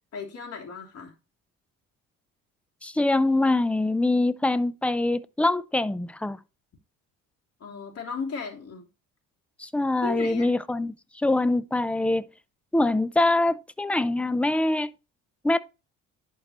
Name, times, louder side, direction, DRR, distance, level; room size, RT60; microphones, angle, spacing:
voice 1, 0.1-1.1 7.6-8.9 10.0-10.5, left 5 dB, 45° left, 3.1 m, -35 dB
voice 2, 2.8-6.4 9.6-12.3 12.7-14.9 15.4-15.6, left 2 dB, 5° left, 0.5 m, -24 dB
11.0 x 4.6 x 3.0 m
cardioid pair, 100°, 33 cm